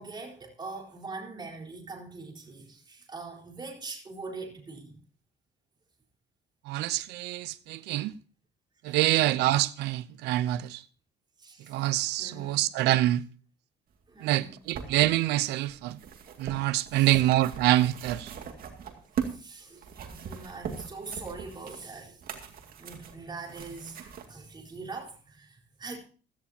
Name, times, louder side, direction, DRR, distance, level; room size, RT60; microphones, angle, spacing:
voice 1, 0.0-5.0 7.7-7.8 8.9-9.3 11.4-11.8 12.2-12.6 14.1-14.6 16.9-17.2 19.2-22.2 22.6-26.0, right 3 dB, 25° right, 4.3 m, -43 dB
voice 2, 6.7-8.1 8.8-10.8 11.7-13.2 14.2-16.0 16.4-18.3, right 15 dB, 85° right, 0.7 m, -26 dB
sound 1, 14.3-19.4 19.8-24.3 25.1-25.2, right 7 dB, 60° right, 2.2 m, -40 dB
16.0 x 14.0 x 2.8 m
cardioid pair, 110°, 17 cm